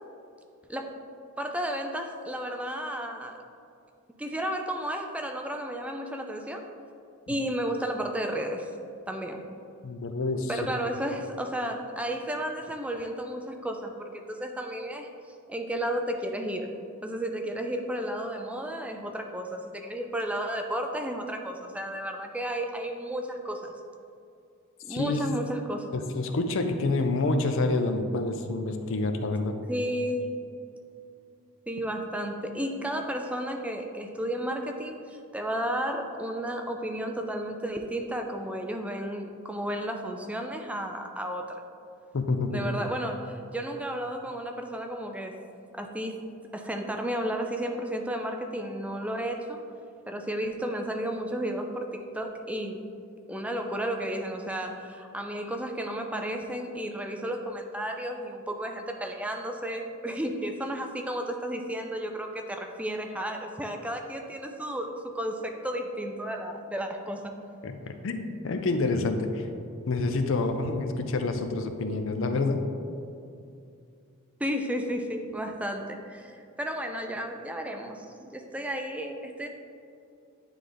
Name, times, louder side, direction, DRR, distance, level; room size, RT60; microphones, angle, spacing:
voice 1, 1.4-3.4 4.2-6.7 7.3-8.7 9.1-9.4 10.5-15.1 15.5-16.7 17.0-23.7 24.8-25.9 29.7-30.4 31.7-41.6 42.5-45.3 45.7-46.2 46.5-49.6 50.1-52.8 53.3-67.3 74.4-79.5, equal, 5° right, 4 dB, 0.4 m, -33 dB
voice 2, 9.8-10.6 24.9-25.2 25.9-29.5 42.1-42.7 67.6-67.7 68.0-69.5 69.9-72.7, left 3 dB, 65° left, 7 dB, 0.5 m, -28 dB
9.6 x 3.3 x 3.8 m, 2.5 s
head